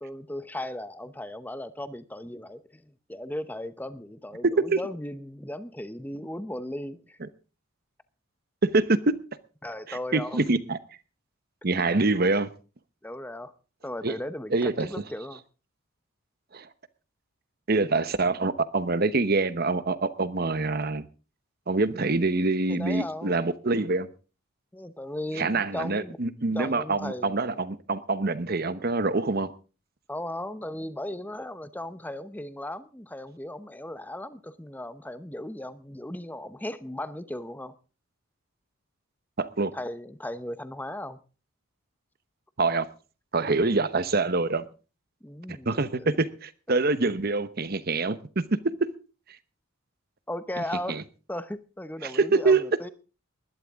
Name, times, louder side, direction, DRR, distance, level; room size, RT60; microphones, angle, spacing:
voice 1, 0.0-7.2 9.6-10.4 11.8-12.0 13.0-13.5 13.8-15.4 22.7-23.4 24.7-26.2 26.5-27.6 30.1-37.7 39.7-41.2 45.2-46.2 50.3-52.9, left 1 dB, 10° left, 0.8 m, -37 dB
voice 2, 4.4-4.8 8.6-9.2 9.9-10.8 11.6-12.5 14.0-14.1 14.5-14.9 16.5-16.7 17.7-21.1 21.7-24.1 25.4-29.5 39.4-39.7 42.6-42.9 43.3-44.6 45.5-48.9 50.9-51.0 52.0-52.6, right 3 dB, 45° right, 1.0 m, -25 dB
20.0 x 12.0 x 3.6 m
head